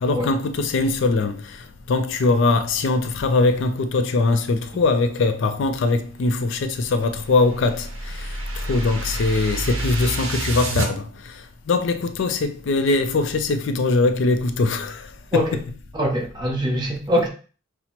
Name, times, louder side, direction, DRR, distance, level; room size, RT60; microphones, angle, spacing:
voice 1, 0.0-1.3 1.9-7.9 8.7-11.0 11.7-15.0 15.3-15.5, left 3 dB, 60° left, 0.4 m, -21 dB
sound 1, 6.9-10.9, right 1 dB, 70° right, 0.8 m, -28 dB
voice 2, 15.9-17.3, equal, 20° right, 0.7 m, -22 dB
5.7 x 2.0 x 2.9 m
head